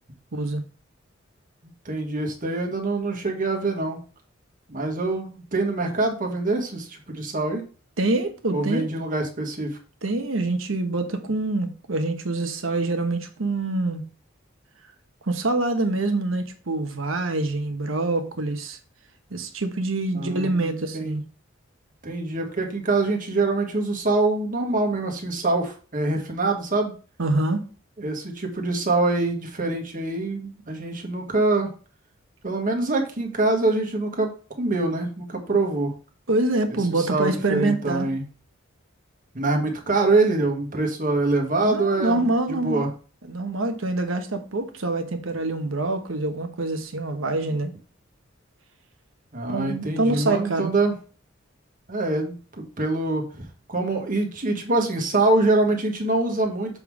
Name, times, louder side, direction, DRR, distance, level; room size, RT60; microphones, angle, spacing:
voice 1, 0.3-0.6 8.0-8.9 10.0-14.0 15.3-18.8 19.3-21.2 27.2-27.6 36.3-38.1 41.6-42.9 43.3-47.7 49.5-50.7, right 2 dB, 80° right, 1.1 m, -25 dB
voice 2, 1.8-4.0 4.7-7.6 8.5-9.8 20.1-21.1 22.0-26.9 28.0-31.7 32.4-34.3 34.6-35.9 36.9-38.2 39.3-42.9 49.3-50.9 51.9-53.3 53.7-56.8, right 2 dB, 45° right, 1.5 m, -24 dB
6.9 x 3.7 x 4.7 m
head